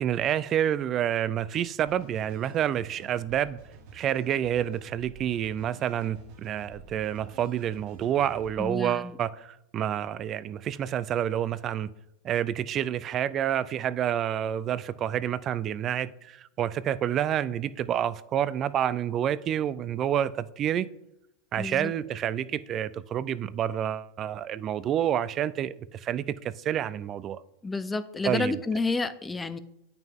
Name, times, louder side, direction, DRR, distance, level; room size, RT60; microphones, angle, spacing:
voice 1, 0.0-3.6 3.9-11.9 12.2-20.9 21.5-27.4 28.2-28.5, right 10 dB, 35° right, 17 dB, 0.4 m, -28 dB
sound 1, 1.9-8.7, right 4 dB, 60° right, 2.1 m, -50 dB
voice 2, 8.6-9.1 21.6-21.9 27.6-29.6, left 3 dB, 15° left, 13 dB, 0.5 m, -30 dB
8.9 x 5.8 x 3.6 m, 0.84 s
hypercardioid pair, 105°, 0 cm